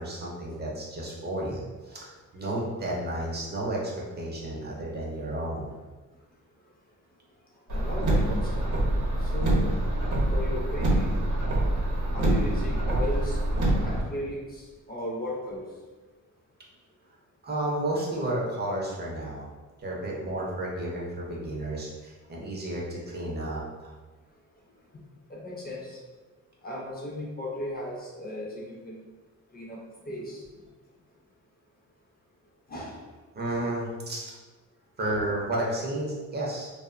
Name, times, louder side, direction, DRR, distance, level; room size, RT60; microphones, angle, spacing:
voice 1, 0.0-5.7 17.4-19.5 19.8-23.9 33.3-34.3 35.0-36.7, right 1 dB, 35° right, -4 dB, 0.4 m, -32 dB
voice 2, 7.7-8.6 9.2-9.8 10.3-11.1 12.1-13.4 13.8-15.6 25.3-26.0 26.6-29.0 29.5-29.8 30.1-30.5 32.7-33.1, left 1 dB, 30° left, -4 dB, 0.4 m, -36 dB
Car, 7.7-14.0, right 1 dB, 75° right, 0.7 m, -25 dB
2.7 x 2.0 x 2.4 m, 1.3 s
wide cardioid pair, 155°, 31 cm